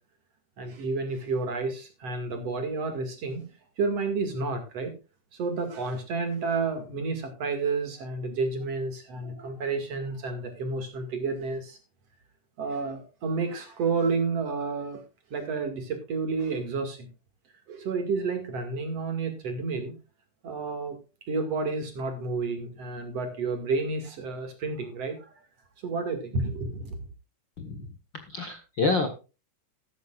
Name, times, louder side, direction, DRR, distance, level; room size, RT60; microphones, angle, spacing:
voice 1, 0.6-3.5 3.8-4.9 5.3-11.8 12.6-15.0 15.3-17.1 17.7-19.9 20.4-21.0 21.3-25.3 25.8-27.0, right 4 dB, 50° right, 6 dB, 3.0 m, -30 dB
voice 2, 27.6-29.1, left 3 dB, 50° left, 4 dB, 1.5 m, -29 dB
14.5 x 12.5 x 2.4 m, 0.31 s
omnidirectional pair, 3.8 m